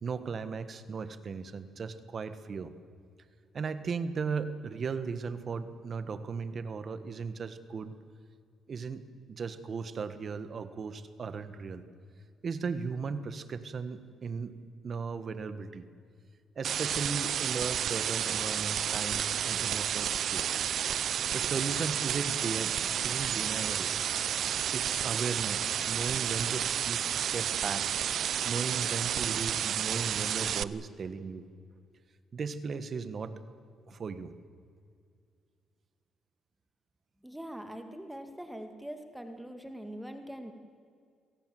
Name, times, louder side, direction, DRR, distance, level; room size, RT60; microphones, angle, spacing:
voice 1, 0.0-2.7 3.5-7.9 8.7-11.8 12.4-14.5 14.8-15.9 16.5-20.5 21.3-22.7 23.0-23.9 24.7-27.8 28.4-31.4 32.3-33.3 33.9-34.3, right 5 dB, 45° right, 12 dB, 1.5 m, -36 dB
sound 1, 16.6-30.6, right 9 dB, 65° right, 0.6 m, -31 dB
voice 2, 37.2-40.5, equal, 5° right, 6 dB, 2.2 m, -42 dB
27.0 x 18.0 x 7.9 m, 2.2 s
cardioid pair, 90°, 0 cm